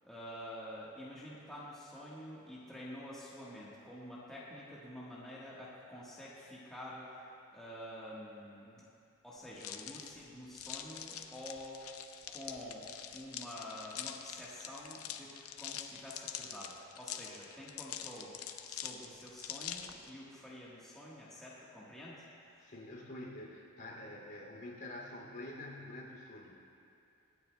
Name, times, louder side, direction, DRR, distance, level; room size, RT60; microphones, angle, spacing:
voice 1, 0.0-7.1 7.5-8.8 9.2-11.8 12.3-22.2, left 1 dB, ahead, -9 dB, 1.3 m, -48 dB
sound 1, 9.6-20.1, left 9 dB, 70° left, 0.6 m, -45 dB
voice 2, 22.6-26.6, left 1 dB, 50° left, -3 dB, 2.7 m, -47 dB
24.5 x 9.4 x 2.2 m, 2.7 s
head